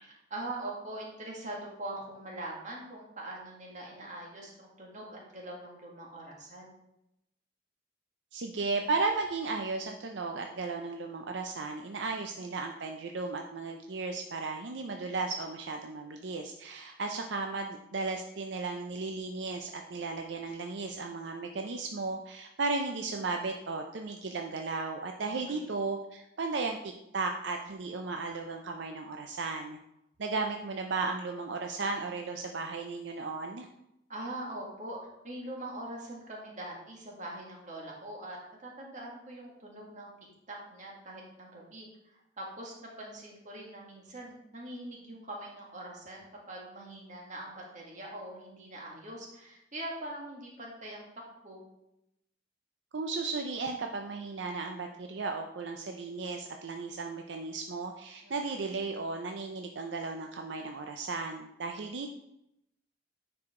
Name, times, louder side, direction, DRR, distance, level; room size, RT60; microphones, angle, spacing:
voice 1, 0.0-6.7 12.1-12.5 25.3-25.7 34.1-35.0 35.2-40.1 40.5-51.1 51.4-51.7 58.2-58.3, right 1 dB, 45° right, -2 dB, 1.9 m, -43 dB
voice 2, 8.3-29.8 30.2-33.7 52.9-62.1, right 3 dB, 75° right, 4 dB, 0.5 m, -35 dB
9.6 x 4.8 x 3.7 m, 0.84 s
head